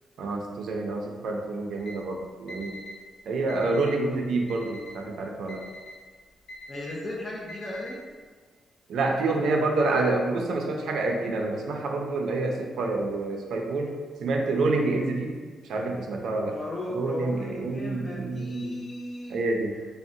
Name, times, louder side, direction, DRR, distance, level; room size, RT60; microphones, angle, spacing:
voice 1, 0.2-2.8 3.3-5.6 8.9-13.9 14.2-15.4 15.6-16.6 16.9-18.8 19.3-19.7, right 3 dB, 70° right, 1 dB, 0.4 m, -28 dB
Alarm, 1.8-1.9 2.5-3.0 3.5-4.0 4.5-5.0 5.5-6.0 6.5-7.0 7.5-8.0, left 1 dB, 75° left, 0.6 m, -43 dB
voice 2, 6.7-8.0 16.5-19.4, left 1 dB, 25° left, -4 dB, 0.4 m, -35 dB
3.6 x 2.0 x 2.6 m, 1.5 s
wide cardioid pair, 180°, 0 cm